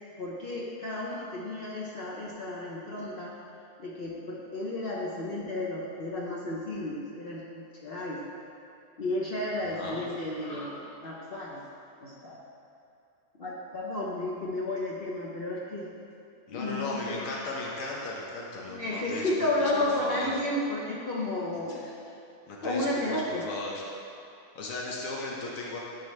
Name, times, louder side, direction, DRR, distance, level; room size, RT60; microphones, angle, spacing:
voice 1, 0.2-3.3 3.8-8.2 9.0-11.6 12.0-12.4 13.4-16.0 16.5-18.1 18.7-22.1 22.6-23.5, left 1 dB, 50° left, -4 dB, 0.9 m, -33 dB
voice 2, 9.8-10.1 16.5-19.7 20.0-20.4 21.7-21.9 22.5-23.8 24.6-25.8, left 2 dB, 90° left, -2 dB, 1.2 m, -36 dB
10.5 x 4.7 x 3.2 m, 2.7 s
omnidirectional pair, 1.4 m